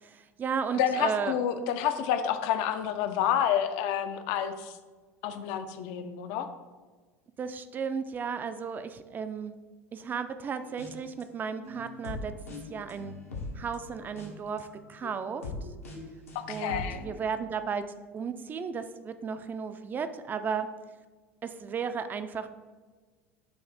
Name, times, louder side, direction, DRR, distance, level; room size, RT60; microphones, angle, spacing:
voice 1, 0.0-1.4 7.4-9.6 9.9-12.3 12.7-13.2 13.5-15.5 16.5-17.8 18.1-20.7 21.4-22.5, right 6 dB, 25° right, 10 dB, 0.3 m, -34 dB
voice 2, 0.7-4.8 5.2-6.5 16.3-17.1, left 9 dB, 55° left, 10 dB, 0.4 m, -29 dB
sound 1, 10.5-11.2 11.6-17.1, left 3 dB, 75° left, 0.8 m, -41 dB
6.3 x 2.6 x 3.3 m, 1.4 s
figure-of-eight pair, 75°, 8 cm